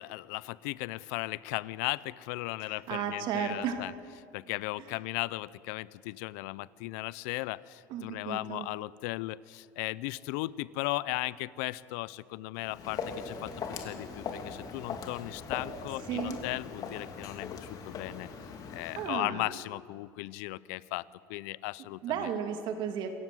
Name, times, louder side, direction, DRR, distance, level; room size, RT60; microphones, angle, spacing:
voice 1, 0.0-3.9 4.3-13.5 13.8-18.3 18.7-21.0 21.3-22.3, left 20 dB, 75° left, 20 dB, 0.6 m, -36 dB
voice 2, 2.6-3.9 7.9-8.7 16.1-16.4 19.0-19.5 22.0-23.1, right 7 dB, 60° right, 6 dB, 2.8 m, -34 dB
Walk footsteps, 12.6-19.2, left 5 dB, 45° left, 3.0 m, -40 dB
27.0 x 15.5 x 7.9 m, 2.3 s
supercardioid pair, 105°, 9 cm